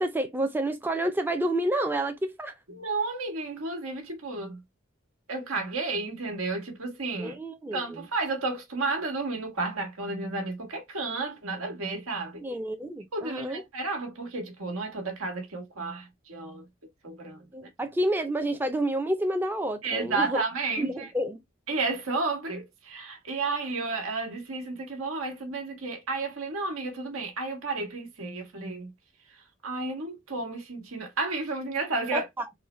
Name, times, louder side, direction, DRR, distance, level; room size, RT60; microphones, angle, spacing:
voice 1, 0.0-2.5 7.2-8.0 12.4-13.6 17.5-20.4 20.8-21.4 32.1-32.2, right 1 dB, 10° right, 0.3 m, -29 dB
voice 2, 2.7-4.6 5.3-7.4 7.7-12.4 13.1-16.7 17.0-17.5 19.8-21.1 21.7-28.9 29.2-32.2, right 3 dB, 90° right, 1.3 m, -32 dB
3.8 x 2.1 x 3.0 m
head